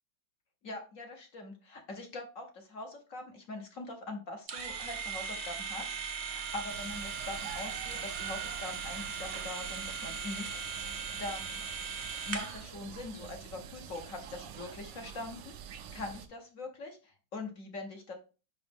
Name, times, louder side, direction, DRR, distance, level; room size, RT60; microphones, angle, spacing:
voice 1, 0.6-10.8 11.2-11.5 12.3-18.1, left 2 dB, 50° left, 3 dB, 1.2 m, -43 dB
sound 1, 4.5-12.6, right 6 dB, 55° right, 0.7 m, -38 dB
sound 2, 6.7-16.3, right 8 dB, 70° right, 1.2 m, -47 dB
5.4 x 5.0 x 3.5 m, 0.33 s
omnidirectional pair, 2.0 m